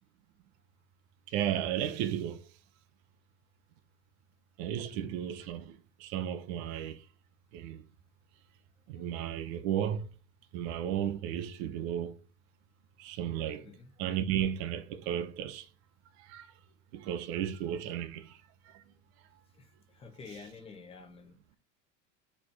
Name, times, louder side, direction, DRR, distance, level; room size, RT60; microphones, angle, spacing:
voice 1, 1.3-2.5 4.6-7.0 7.5-7.8 8.9-10.1 10.5-12.2 13.0-13.7 14.0-15.7 16.2-16.5 16.9-18.8 20.3-20.5, right 10 dB, 55° right, 0.9 m, -34 dB
voice 2, 4.8-5.2 9.0-9.1 13.6-13.9 19.5-21.4, left 4 dB, 15° left, 1.0 m, -50 dB
4.9 x 4.5 x 5.6 m
cardioid pair, 175°, 38 cm